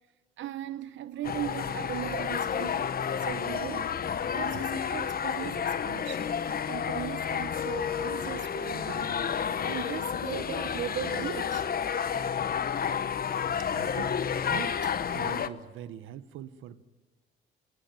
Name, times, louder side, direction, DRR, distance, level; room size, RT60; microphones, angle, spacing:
voice 1, 0.4-6.3 6.7-11.7, right 11 dB, 75° right, 0.9 m, -38 dB
sound 1, 1.2-15.5, left 7 dB, 50° left, 1.2 m, -31 dB
voice 2, 13.7-14.2 14.5-14.9 15.1-16.8, right 10 dB, 90° right, 1.2 m, -42 dB
28.0 x 19.5 x 9.2 m
cardioid pair, 90°, 20 cm